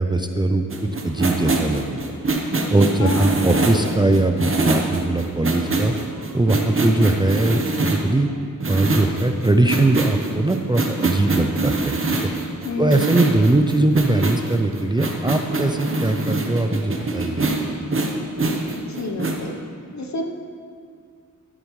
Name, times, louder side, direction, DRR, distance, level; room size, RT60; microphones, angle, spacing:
voice 1, 0.0-2.0 2.7-5.9 6.3-8.3 8.7-12.3 12.8-17.4, right 2 dB, 15° right, 5 dB, 0.4 m, -20 dB
sound 1, 0.7-8.1 8.6-19.4, right 2 dB, 40° right, 1.0 m, -24 dB
voice 2, 3.0-3.9 6.8-7.1 12.6-13.0 18.8-19.5 19.9-20.3, left 3 dB, 55° left, 4 dB, 1.0 m, -29 dB
13.5 x 8.8 x 3.2 m, 2.2 s
wide cardioid pair, 105°, 33 cm